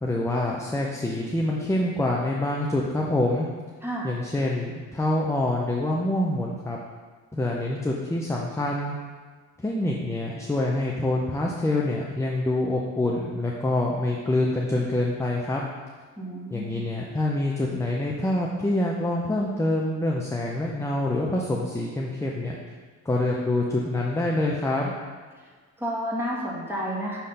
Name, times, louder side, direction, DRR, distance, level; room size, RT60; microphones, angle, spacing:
voice 1, 0.0-3.5 4.0-6.8 7.3-9.0 9.6-15.6 16.5-22.6 23.0-24.9, left 1 dB, 10° left, -2 dB, 0.6 m, -26 dB
voice 2, 3.8-4.1 16.2-16.8 25.8-27.2, equal, 5° right, -5 dB, 1.7 m, -30 dB
5.8 x 3.2 x 5.6 m, 1.5 s
cardioid pair, 90°, 30 cm